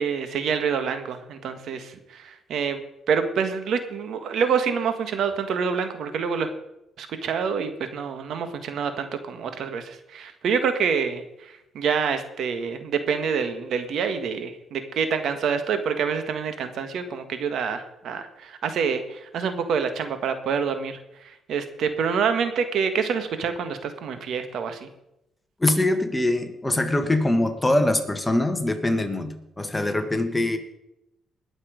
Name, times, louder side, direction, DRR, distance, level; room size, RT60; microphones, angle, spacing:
voice 1, 0.0-2.8 3.1-6.5 7.0-24.9, right 6 dB, 70° right, 9 dB, 1.6 m, -27 dB
voice 2, 25.6-30.6, left 1 dB, 15° left, 7 dB, 1.7 m, -23 dB
20.0 x 7.3 x 5.2 m, 0.86 s
cardioid pair, 90°, 0 cm